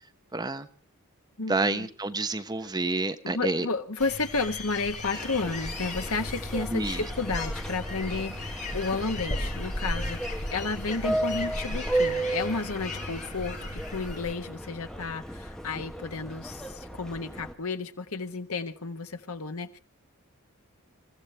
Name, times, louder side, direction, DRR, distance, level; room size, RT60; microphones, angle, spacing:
voice 1, 0.3-0.7 1.5-3.7 6.7-7.0 11.1-11.2, right 2 dB, 20° right, 0.9 m, -29 dB
voice 2, 1.4-1.9 3.2-19.8, left 3 dB, 70° left, 1.4 m, -32 dB
sound 1, 4.0-14.3, left 1 dB, 35° left, 4.3 m, -36 dB
Subway metro underground, 5.1-17.5, right 1 dB, 5° left, 1.2 m, -35 dB
28.5 x 15.0 x 3.3 m
head